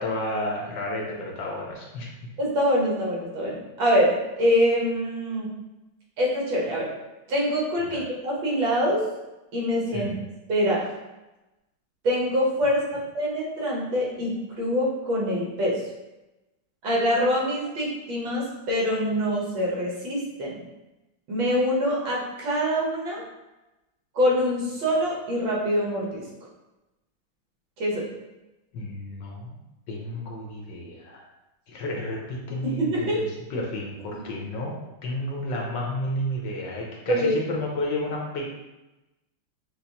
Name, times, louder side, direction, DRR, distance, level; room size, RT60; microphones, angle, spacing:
voice 1, 0.0-2.1 7.9-8.0 9.9-10.2 28.7-29.6 29.9-31.2 31.7-34.8 35.0-38.6, left 1 dB, 70° left, -2 dB, 1.3 m, -31 dB
voice 2, 2.4-5.5 6.2-6.9 7.3-9.0 9.5-10.1 10.5-10.9 12.0-15.7 16.8-20.5 21.3-23.2 24.2-26.2 27.8-28.0 32.6-33.2 37.1-37.3, equal, 70° right, -4 dB, 1.8 m, -25 dB
6.4 x 2.5 x 2.8 m, 1.0 s
omnidirectional pair, 2.3 m